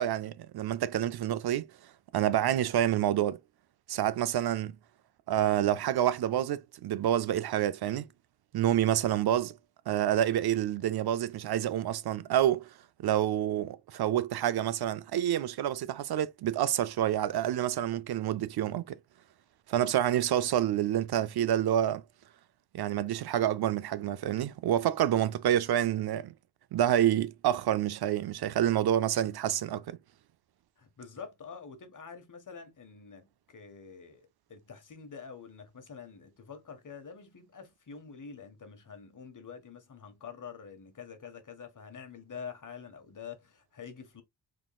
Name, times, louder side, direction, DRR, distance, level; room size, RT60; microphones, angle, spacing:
voice 1, 0.0-1.7 2.1-3.4 3.9-4.8 5.3-8.1 8.5-9.6 9.9-12.7 13.0-19.0 19.7-22.0 22.7-26.3 26.7-30.0, right 11 dB, 65° right, 0.5 m, -28 dB
voice 2, 30.8-44.2, left 6 dB, 45° left, 1.4 m, -47 dB
3.9 x 3.6 x 2.3 m
cardioid pair, 85°, 42 cm